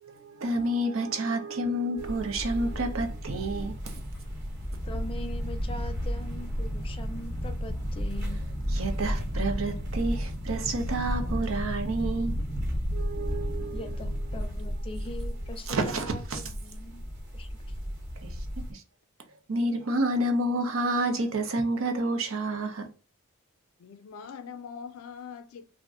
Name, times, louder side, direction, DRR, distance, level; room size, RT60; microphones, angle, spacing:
voice 1, 0.0-4.0 8.7-12.4 12.9-13.9 15.7-16.4 18.2-18.3 18.7-18.8 19.5-22.9, right 1 dB, 75° right, 0.6 m, -29 dB
sound 1, 2.0-18.7, equal, 55° right, 0.9 m, -33 dB
voice 2, 4.8-8.5 13.7-17.0 17.3-17.8, left 1 dB, 25° left, 0.4 m, -42 dB
voice 3, 23.8-25.7, left 6 dB, 90° left, 0.4 m, -42 dB
2.5 x 2.1 x 3.6 m
head